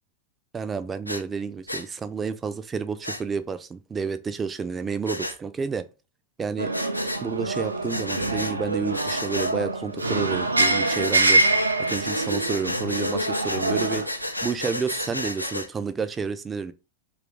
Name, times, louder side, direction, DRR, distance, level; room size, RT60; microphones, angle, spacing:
voice 1, 0.5-5.9 6.4-6.7 7.2-14.0 14.4-16.7, right 5 dB, 20° right, 0.4 m, -30 dB
Breathing, 1.1-1.2 1.7-1.9 3.0-3.2 5.1-5.4 6.7-7.2 7.9-8.5 8.9-9.5 10.8-11.3 11.9-15.7, left 1 dB, 90° left, 0.4 m, -32 dB
sound 1, 6.6-14.1, right 2 dB, 80° right, 0.4 m, -25 dB
2.9 x 2.4 x 3.5 m
figure-of-eight pair, 90°, 0 cm